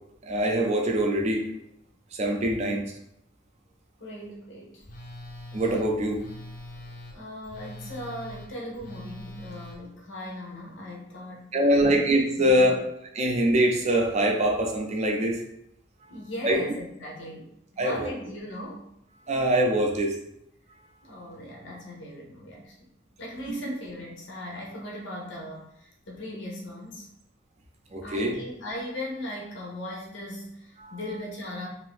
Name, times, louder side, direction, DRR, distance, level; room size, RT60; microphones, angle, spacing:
voice 1, 0.2-1.5 2.1-2.8 5.5-6.2 11.5-12.8 13.1-15.4 16.4-16.6 17.8-18.1 19.3-20.1 27.9-28.3 30.8-30.9, right 1 dB, 35° right, 1 dB, 0.4 m, -23 dB
voice 2, 4.0-4.8 7.1-12.0 12.4-12.8 16.1-17.5 17.7-18.8 21.0-22.9 23.2-27.1 28.0-31.7, left 1 dB, 80° left, -3 dB, 0.7 m, -38 dB
Telephone, 4.8-9.8, left 1 dB, 50° left, 0.6 m, -43 dB
2.6 x 2.5 x 3.5 m, 0.78 s
head